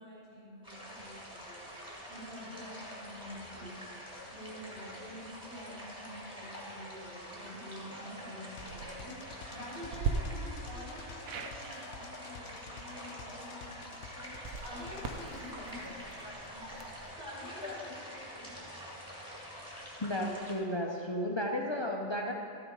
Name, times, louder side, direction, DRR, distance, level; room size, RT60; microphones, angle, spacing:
voice 1, 0.0-16.2 16.5-18.9, left 1 dB, 50° right, -9 dB, 3.2 m, -48 dB
sound 1, 0.6-20.5, equal, 5° right, 2.0 m, -46 dB
sound 2, 8.5-8.9 9.9-10.1 11.2-11.6 14.3-17.1, right 6 dB, 85° right, 1.1 m, -40 dB
sound 3, 8.6-15.3, left 6 dB, 75° left, 1.0 m, -51 dB
voice 2, 20.0-22.3, left 1 dB, 40° left, 1 dB, 0.3 m, -33 dB
13.0 x 6.8 x 4.8 m, 2.5 s
omnidirectional pair, 1.5 m